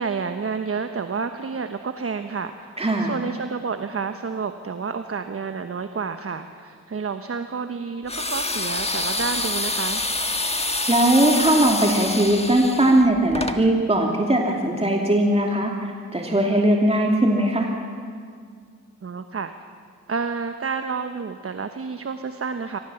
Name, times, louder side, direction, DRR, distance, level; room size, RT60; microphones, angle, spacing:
voice 1, 0.0-10.0 19.0-19.5 20.1-22.8, right 5 dB, 45° right, 8 dB, 1.2 m, -30 dB
voice 2, 2.8-3.1 10.9-17.7, right 1 dB, 20° right, 0 dB, 2.8 m, -19 dB
sound 1, 8.1-13.6, left 2 dB, 20° left, 1.6 m, -27 dB
24.0 x 19.0 x 7.1 m, 2.1 s
cardioid pair, 50°, 32 cm